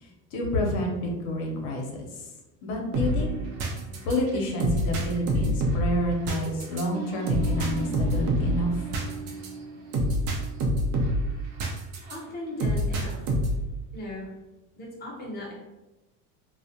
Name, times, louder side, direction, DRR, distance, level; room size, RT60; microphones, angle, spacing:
voice 1, 0.0-1.9 2.6-3.3 4.0-8.8, left 1 dB, 70° left, 1 dB, 0.7 m, -29 dB
sound 1, 2.9-12.2 12.6-13.7, right 1 dB, 60° right, 0.6 m, -27 dB
voice 2, 12.1-13.3 13.9-14.3 14.8-15.5, left 1 dB, 25° left, -3 dB, 0.8 m, -37 dB
2.3 x 2.1 x 2.7 m, 1.1 s
cardioid pair, 145°, 35 cm